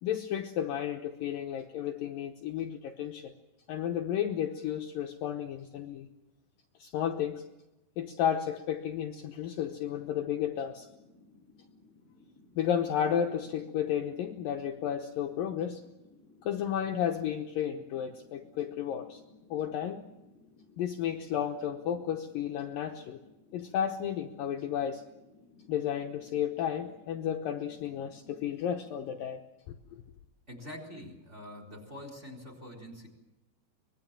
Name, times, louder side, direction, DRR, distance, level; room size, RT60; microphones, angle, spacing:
voice 1, 0.0-3.3 3.7-6.1 6.8-7.4 8.0-10.9 12.6-15.8 16.4-19.2 19.5-20.0 20.8-23.2 23.5-25.0 25.7-29.4 29.7-30.0, left 9 dB, 85° left, 4 dB, 1.9 m, -32 dB
sound 1, 9.7-29.3, left 3 dB, 35° right, 7.6 m, -60 dB
voice 2, 30.5-33.1, left 1 dB, 15° right, 4 dB, 3.7 m, -45 dB
25.0 x 21.5 x 7.3 m, 0.98 s
omnidirectional pair, 5.5 m